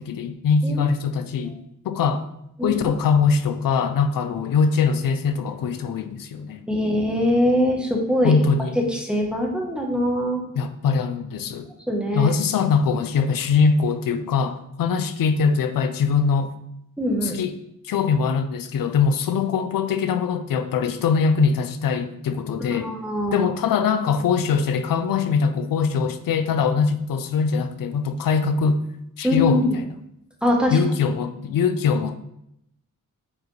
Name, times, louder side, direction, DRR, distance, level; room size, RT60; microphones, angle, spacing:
voice 1, 0.0-1.6 1.8-2.2 2.6-6.6 8.2-8.7 10.6-11.7 12.1-16.5 17.2-17.5 17.8-22.9 23.3-28.8 29.2-29.7 30.7-32.2, left 5 dB, 85° left, 9 dB, 0.6 m, -22 dB
voice 2, 6.7-8.3 8.8-10.4 11.9-12.3 17.0-17.4 22.6-23.5 29.2-29.7 30.4-30.8, left 1 dB, 5° right, 0 dB, 1.1 m, -22 dB
8.5 x 4.8 x 3.2 m, 0.79 s
wide cardioid pair, 180°, 33 cm